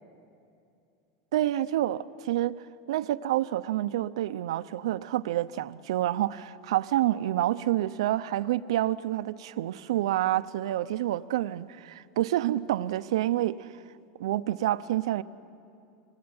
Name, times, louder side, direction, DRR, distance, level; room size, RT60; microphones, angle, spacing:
voice 1, 1.3-2.6 2.9-13.7 14.2-15.2, right 13 dB, 85° right, 0.7 m, -28 dB
26.0 x 20.5 x 9.6 m
supercardioid pair, 170°, 3 cm